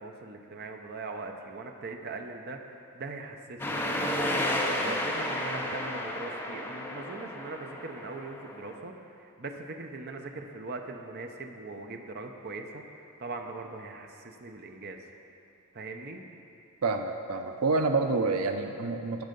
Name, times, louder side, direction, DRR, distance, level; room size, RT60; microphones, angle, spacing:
voice 1, 0.0-15.0 15.7-16.2, right 3 dB, 45° right, 4 dB, 0.7 m, -41 dB
sound 1, 3.6-8.8, left 1 dB, 10° left, 0.7 m, -32 dB
voice 2, 16.8-19.2, right 3 dB, 85° right, 6 dB, 0.6 m, -28 dB
14.0 x 5.5 x 5.3 m, 2.7 s
head